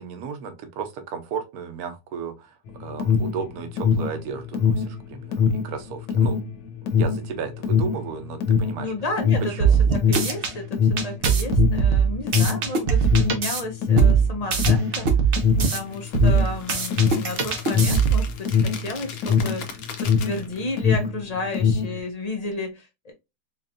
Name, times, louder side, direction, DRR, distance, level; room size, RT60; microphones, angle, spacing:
voice 1, 0.0-6.4 6.9-8.9 9.5-9.8, right 6 dB, 65° right, 1.2 m, -34 dB
Alarm, 2.7-20.5 20.7-22.0, left 6 dB, 90° left, 1.4 m, -22 dB
voice 2, 8.8-15.1 15.7-23.1, left 2 dB, 40° left, 0.6 m, -32 dB
sound 1, 9.6-10.5 11.0-13.6 14.0-15.8 16.1-18.3, right 6 dB, 50° right, 0.7 m, -21 dB
sound 2, 15.3-20.8, left 6 dB, 65° left, 1.1 m, -40 dB
4.2 x 3.0 x 2.5 m
omnidirectional pair, 1.8 m